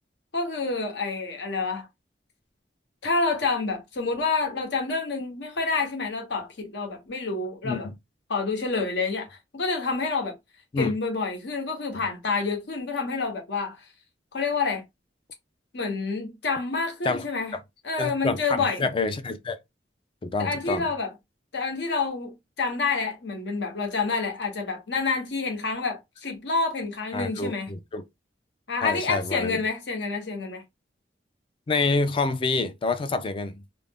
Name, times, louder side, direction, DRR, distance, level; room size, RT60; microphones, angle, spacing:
voice 1, 0.3-1.9 3.0-7.9 8.3-10.3 10.8-13.8 14.3-14.8 15.7-17.5 17.8-18.8 20.4-21.1 21.5-27.7 28.7-30.6, left 4 dB, 70° left, 0.9 m, -28 dB
voice 2, 7.6-7.9 10.7-10.9 17.0-17.2 18.0-19.6 20.2-20.8 27.1-28.0 28.8-29.6 31.7-33.6, left 3 dB, 30° left, 0.3 m, -27 dB
2.4 x 2.0 x 3.4 m
head